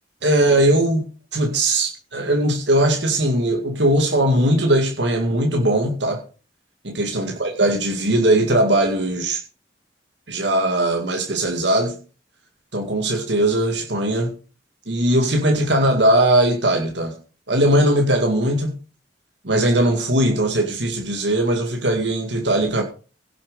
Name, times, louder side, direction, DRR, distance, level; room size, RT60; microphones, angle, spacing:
voice 1, 0.2-1.1 1.3-6.2 6.8-9.4 10.3-12.0 12.7-14.3 14.9-17.1 17.5-18.7 19.4-22.8, right 1 dB, 70° right, 2.1 m, -19 dB
17.0 x 7.4 x 5.3 m
head